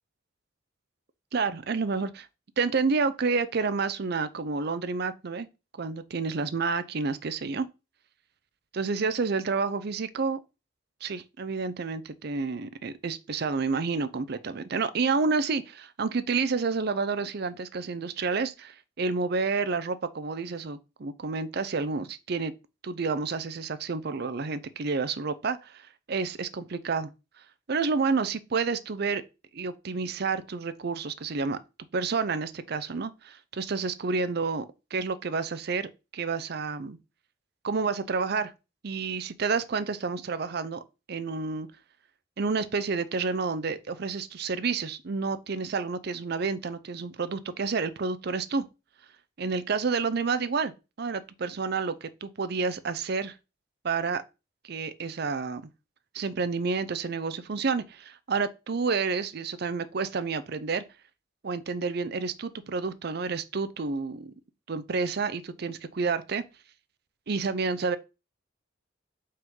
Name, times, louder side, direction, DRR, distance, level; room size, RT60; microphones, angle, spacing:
voice 1, 1.3-2.3 2.6-5.5 5.8-7.7 8.7-10.4 11.0-22.5 22.8-27.1 27.7-29.2 29.5-31.6 31.9-34.7 34.9-37.0 37.6-38.5 38.8-40.8 41.1-41.7 42.4-48.7 49.4-50.7 51.0-53.4 53.8-54.2 54.6-55.6 56.1-60.8 61.4-64.3 64.7-66.4 67.3-68.0, right 4 dB, 55° right, 0.5 m, -29 dB
5.4 x 3.7 x 5.4 m
head